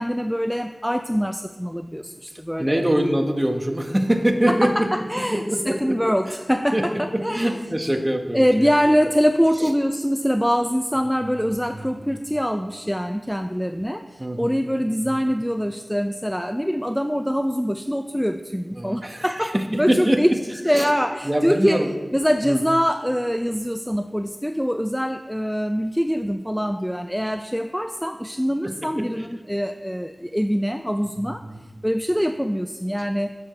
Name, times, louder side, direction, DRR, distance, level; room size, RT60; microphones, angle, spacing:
voice 1, 0.0-2.8 4.5-7.6 8.3-20.3 20.6-21.8 22.1-31.5 31.8-33.4, equal, ahead, 8 dB, 0.3 m, -24 dB
voice 2, 2.6-4.9 5.3-6.1 6.7-8.7 9.6-9.7 11.5-12.2 14.2-15.2 18.8-20.2 20.7-20.9 21.2-21.9 22.4-22.6 28.6-29.3 31.2-31.6 33.0-33.1, right 1 dB, 20° right, 4 dB, 0.9 m, -24 dB
8.3 x 4.8 x 6.7 m, 1.3 s
wide cardioid pair, 70°, 0 cm